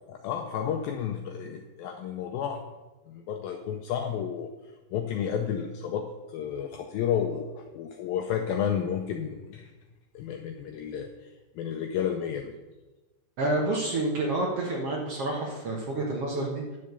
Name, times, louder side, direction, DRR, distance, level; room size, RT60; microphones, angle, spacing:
voice 1, 0.1-2.6 3.1-4.5 4.9-9.7 10.1-11.1 11.6-12.5, left 8 dB, 80° left, 4 dB, 2.1 m, -31 dB
voice 2, 13.4-16.8, right 2 dB, 85° right, -2 dB, 1.3 m, -29 dB
10.5 x 6.6 x 6.7 m, 1.2 s
omnidirectional pair, 4.8 m